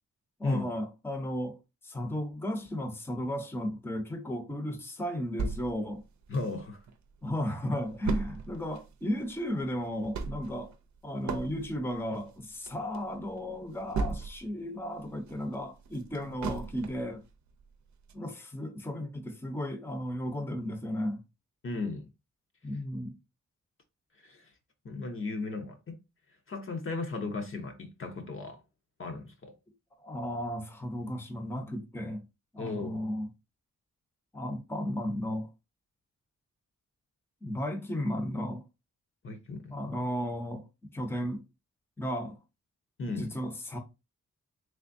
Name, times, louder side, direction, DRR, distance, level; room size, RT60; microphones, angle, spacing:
voice 1, 0.4-1.6 1.8-6.0 7.2-10.7 11.0-17.2 18.1-21.2 22.6-23.2 30.0-32.2 32.5-33.3 34.3-35.5 37.4-38.6 39.7-40.6 40.9-41.4 42.0-42.4 43.0-43.8, equal, 10° left, 0.7 m, -34 dB
sound 1, 5.4-6.9 7.3-7.4 7.6-14.6 15.0-17.1 17.6-17.7 18.1-18.2, right 4 dB, 75° right, 0.6 m, -36 dB
voice 2, 6.3-6.8 21.6-22.1 24.2-24.5 24.8-26.0 26.5-28.6 29.0-29.5 32.6-33.0 39.2-39.8 43.0-43.3, left 3 dB, 45° left, 0.7 m, -35 dB
3.4 x 3.3 x 2.5 m
wide cardioid pair, 125°, 29 cm